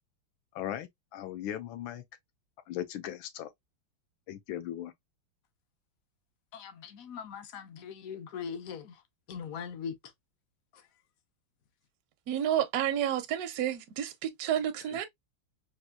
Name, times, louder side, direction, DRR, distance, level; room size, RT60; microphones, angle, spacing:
voice 1, 0.5-2.0 2.7-3.5 4.3-4.9 14.9-15.1, left 12 dB, 90° left, 1.4 m, -38 dB
voice 2, 6.5-9.0 9.3-10.0 10.7-10.8, left 7 dB, 70° left, 0.8 m, -40 dB
voice 3, 12.3-15.0, right 10 dB, 75° right, 0.9 m, -30 dB
4.3 x 2.4 x 2.2 m
omnidirectional pair, 2.1 m